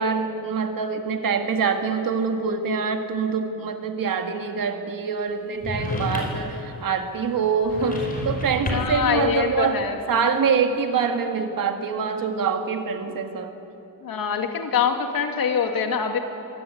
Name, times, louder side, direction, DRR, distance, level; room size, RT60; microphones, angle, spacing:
voice 1, 0.0-13.6, right 5 dB, 65° right, 5 dB, 2.1 m, -25 dB
sound 1, 5.6-6.5 7.6-9.1, left 1 dB, 25° left, 5.4 m, -29 dB
voice 2, 8.7-10.0 14.0-16.2, left 7 dB, 70° left, 4 dB, 2.4 m, -24 dB
24.5 x 18.0 x 9.4 m, 2.9 s
wide cardioid pair, 170°, 36 cm